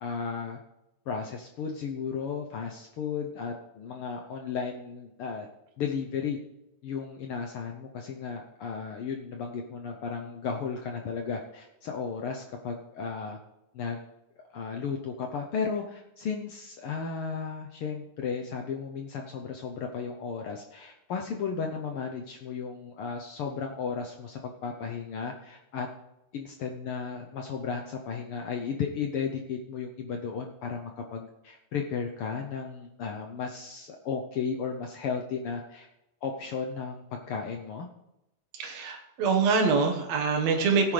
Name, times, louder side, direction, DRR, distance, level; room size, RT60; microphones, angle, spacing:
voice 1, 0.0-0.6 1.1-5.5 5.8-6.4 6.8-13.4 13.7-14.0 14.5-25.9 26.3-35.9 36.2-37.9, left 6 dB, 80° left, 2 dB, 1.2 m, -34 dB
voice 2, 38.6-40.9, right 4 dB, 60° right, 3 dB, 2.5 m, -25 dB
17.5 x 9.5 x 3.3 m, 0.90 s
omnidirectional pair, 3.5 m